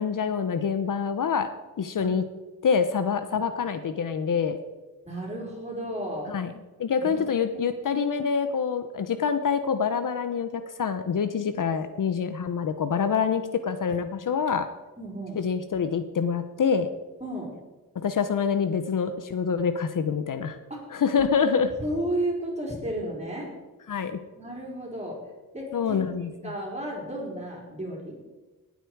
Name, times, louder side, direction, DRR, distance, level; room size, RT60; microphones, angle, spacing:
voice 1, 0.0-1.5 1.8-2.2 2.6-4.6 6.3-6.5 6.8-14.7 15.4-16.9 17.9-20.6 20.9-21.7 23.9-24.2 25.7-26.5, left 6 dB, 60° left, 10 dB, 0.9 m, -26 dB
voice 2, 5.0-6.3 7.0-7.3 7.8-7.9 15.0-15.4 17.2-17.5 20.7-20.9 21.8-23.5 24.4-25.2 25.5-26.0 26.4-28.2, right 1 dB, 15° right, -1 dB, 4.4 m, -33 dB
19.0 x 8.3 x 4.7 m, 1.2 s
wide cardioid pair, 125°, 37 cm